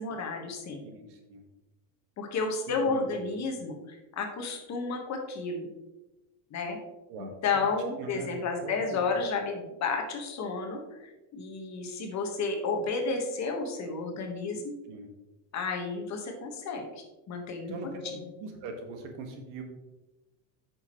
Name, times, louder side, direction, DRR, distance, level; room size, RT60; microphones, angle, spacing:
voice 1, 0.0-0.8 2.2-5.7 6.5-6.8 7.2-14.7 15.5-17.7, left 4 dB, 35° left, 3 dB, 1.4 m, -32 dB
voice 2, 0.8-1.4 2.7-3.2 7.1-7.4 8.0-8.3 8.6-9.0 14.8-15.1 17.7-19.6, right 3 dB, 60° right, 4 dB, 1.7 m, -41 dB
8.6 x 6.4 x 3.1 m, 1.1 s
supercardioid pair, 135°, 49 cm